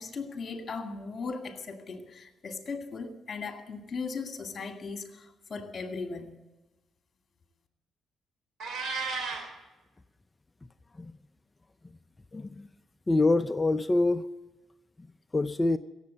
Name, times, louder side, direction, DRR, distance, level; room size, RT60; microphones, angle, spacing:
voice 1, 0.0-6.3, left 4 dB, 40° left, 5 dB, 2.2 m, -38 dB
Meow, 8.6-9.5, right 4 dB, 65° right, 3.1 m, -33 dB
voice 2, 12.3-12.7 13.1-14.2 15.3-15.8, left 2 dB, 20° left, 11 dB, 0.5 m, -25 dB
16.5 x 7.7 x 8.4 m, 1.1 s
cardioid pair, 90°, 0 cm